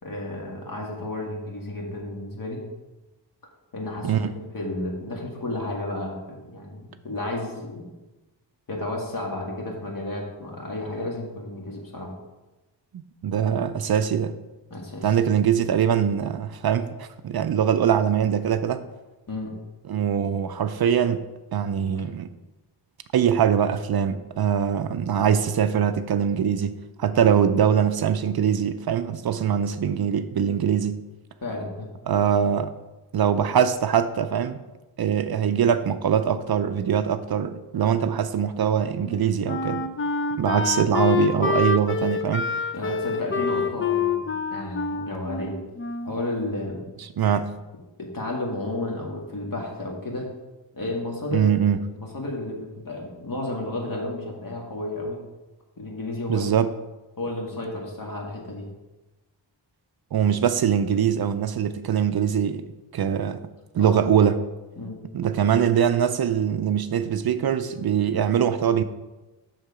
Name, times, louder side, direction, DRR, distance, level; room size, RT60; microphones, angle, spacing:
voice 1, 0.0-2.6 3.7-4.3 4.5-7.9 8.7-12.1 14.7-15.2 19.3-19.5 22.0-22.1 31.4-31.9 42.7-45.6 46.0-46.9 48.0-50.3 50.7-51.5 51.9-55.2 55.8-56.5 57.2-58.7 63.8-64.0 64.8-65.0, left 2 dB, 45° left, -1 dB, 2.0 m, -32 dB
voice 2, 12.9-14.3 15.0-18.8 19.9-22.3 23.1-31.0 32.1-32.7 33.1-34.6 35.0-39.9 40.4-42.5 47.0-47.5 51.3-51.8 56.3-56.7 60.1-63.5 63.7-64.4 65.1-68.8, right 8 dB, 55° right, 11 dB, 0.5 m, -22 dB
Wind instrument woodwind instrument, 39.0-46.3, left 5 dB, 30° left, 0.5 m, -27 dB
6.6 x 6.5 x 4.9 m, 1.1 s
wide cardioid pair, 95°, 45 cm